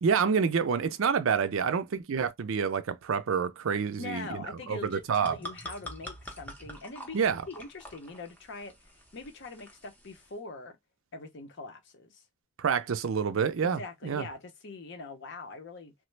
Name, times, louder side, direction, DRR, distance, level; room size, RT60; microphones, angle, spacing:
voice 1, 0.0-4.4 4.7-5.3 7.1-7.4 12.6-14.3, right 6 dB, 65° right, 0.4 m, -28 dB
voice 2, 4.0-7.2 7.5-10.8 11.1-12.2 13.6-15.9, left 3 dB, 55° left, 0.6 m, -43 dB
sound 1, 4.9-10.3, equal, 5° left, 0.5 m, -46 dB
3.1 x 2.0 x 3.1 m
head